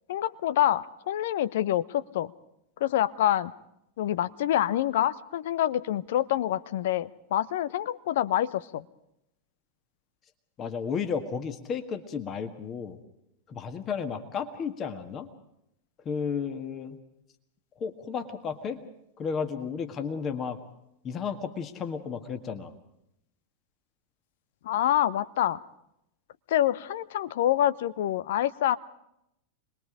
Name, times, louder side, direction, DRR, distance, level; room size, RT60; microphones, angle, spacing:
voice 1, 0.1-2.3 2.8-3.5 4.0-8.8 24.6-25.6 26.5-28.8, left 12 dB, 55° left, 14 dB, 0.8 m, -26 dB
voice 2, 10.6-13.0 13.5-15.3 16.1-17.0 17.8-18.8 19.2-20.6 21.0-22.7, left 6 dB, 30° left, 7 dB, 1.8 m, -33 dB
26.0 x 21.5 x 5.0 m, 0.80 s
figure-of-eight pair, 90°, 0 cm